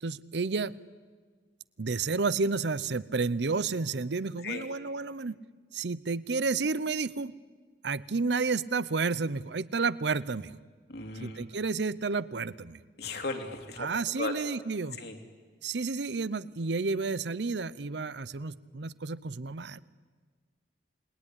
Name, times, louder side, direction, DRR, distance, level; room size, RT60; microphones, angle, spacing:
voice 1, 0.0-0.8 1.8-5.4 5.7-7.3 7.8-10.6 11.1-12.8 13.8-15.0 15.6-19.8, right 4 dB, 75° right, 18 dB, 0.7 m, -31 dB
voice 2, 10.9-11.4 13.0-13.9 14.2-14.3 15.0-15.2, left 3 dB, 65° left, 4 dB, 3.0 m, -36 dB
28.5 x 20.5 x 10.0 m, 1.5 s
head